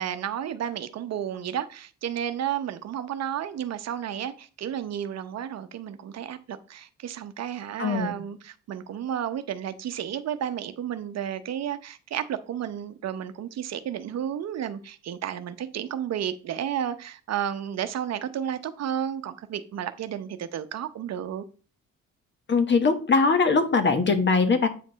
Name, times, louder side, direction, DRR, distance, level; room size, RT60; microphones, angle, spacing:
voice 1, 0.0-21.4, right 9 dB, 60° right, 0.8 m, -32 dB
voice 2, 7.8-8.2 22.5-24.7, left 4 dB, 40° left, 1.3 m, -21 dB
8.5 x 5.3 x 4.0 m
cardioid pair, 85°, 29 cm